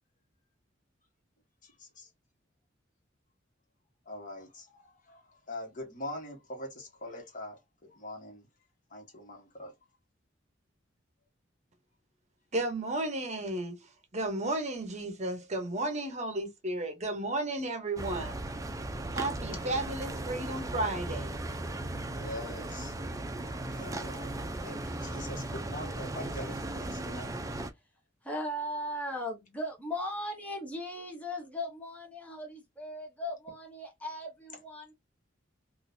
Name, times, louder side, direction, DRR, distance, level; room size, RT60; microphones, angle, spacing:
voice 1, 1.6-2.1 4.0-8.5 8.9-9.7 19.7-19.9 22.1-22.9 23.5-27.3, left 1 dB, 45° left, 1.3 m, -43 dB
voice 2, 12.5-13.8 14.1-18.3 19.1-21.4, right 2 dB, 35° right, 0.9 m, -33 dB
sound 1, 18.0-27.7, right 1 dB, 15° right, 0.4 m, -37 dB
voice 3, 28.2-34.9, left 1 dB, 5° left, 0.9 m, -38 dB
3.8 x 2.6 x 2.6 m
head